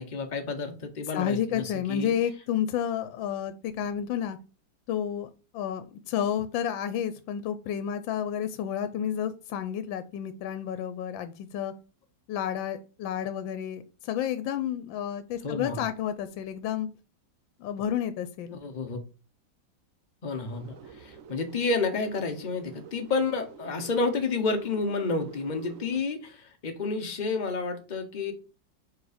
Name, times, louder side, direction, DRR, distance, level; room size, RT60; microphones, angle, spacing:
voice 1, 0.0-2.1 15.4-15.8 18.5-19.0 20.2-28.3, left 4 dB, 45° left, 6 dB, 0.6 m, -30 dB
voice 2, 1.1-4.4 4.9-11.7 12.3-16.9 17.6-18.6, left 9 dB, 85° left, 11 dB, 1.3 m, -31 dB
sound 1, 20.4-26.0, right 7 dB, 65° right, 0.8 m, -47 dB
4.7 x 4.4 x 5.0 m, 0.34 s
omnidirectional pair, 2.1 m